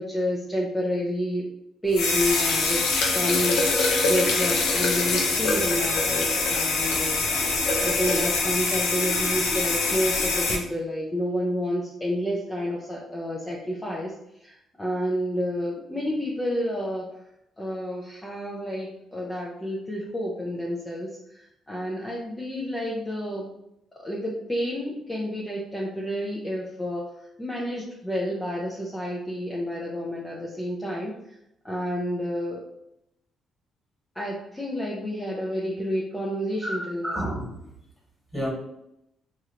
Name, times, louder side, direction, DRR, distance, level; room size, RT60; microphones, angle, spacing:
voice 1, 0.0-1.4 1.8-7.2 7.8-14.1 14.4-17.0 17.6-23.5 23.9-31.1 31.6-32.6 34.1-37.2, equal, 15° left, -4 dB, 0.5 m, -29 dB
sound 1, 1.9-10.6, left 3 dB, 85° left, 0.6 m, -24 dB
voice 2, 36.6-37.6 38.3-38.5, equal, 10° right, -4 dB, 1.5 m, -30 dB
2.9 x 2.5 x 2.8 m, 0.81 s
cardioid pair, 90°, 0 cm